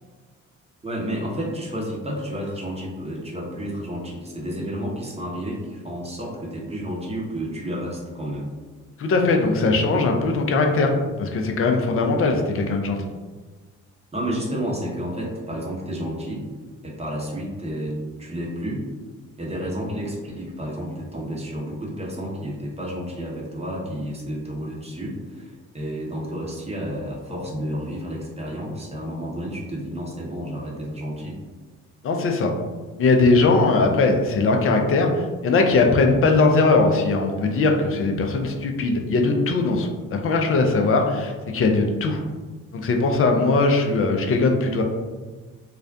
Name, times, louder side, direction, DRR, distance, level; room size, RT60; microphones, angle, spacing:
voice 1, 0.8-8.5 14.1-16.4 16.8-18.9 19.4-31.4, equal, 15° right, -4 dB, 0.7 m, -31 dB
voice 2, 9.0-13.0 32.0-32.5 33.0-42.2 42.7-44.8, left 3 dB, 35° left, 3 dB, 0.4 m, -20 dB
2.4 x 2.1 x 2.5 m, 1.3 s
hypercardioid pair, 50°, 38 cm